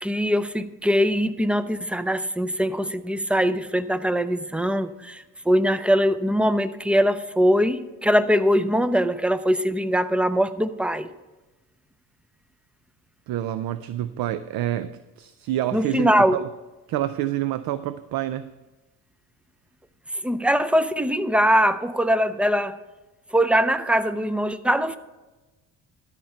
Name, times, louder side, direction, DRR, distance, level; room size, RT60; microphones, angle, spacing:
voice 1, 0.0-11.1 15.7-16.4 20.2-22.8 23.3-25.0, equal, 5° right, 13 dB, 0.5 m, -22 dB
voice 2, 13.3-16.5 16.9-18.5, right 13 dB, 60° right, 14 dB, 0.5 m, -28 dB
13.0 x 4.5 x 6.9 m, 1.1 s
supercardioid pair, 75°, 40 cm